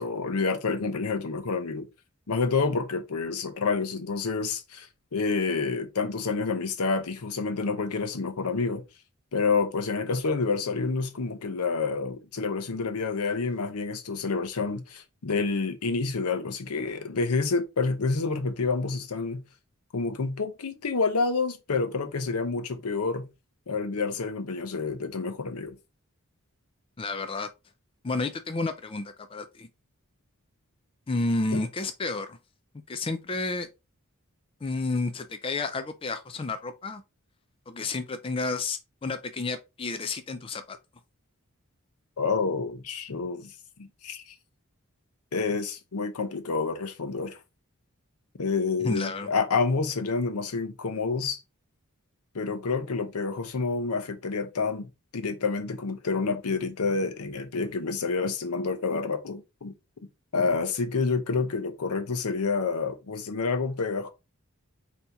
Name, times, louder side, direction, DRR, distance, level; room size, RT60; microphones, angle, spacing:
voice 1, 0.0-1.9 2.3-8.8 9.3-19.4 19.9-23.3 23.7-25.8 31.5-31.6 42.2-43.5 43.8-44.2 45.3-47.4 48.4-51.4 52.3-54.9 55.1-59.7 60.3-64.1, left 4 dB, 90° left, 0.7 m, -28 dB
voice 2, 27.0-27.5 28.0-29.7 31.1-32.4 32.9-33.7 34.6-37.0 37.7-40.8 48.8-49.3, left 3 dB, 25° left, 0.4 m, -31 dB
4.2 x 2.8 x 3.4 m
head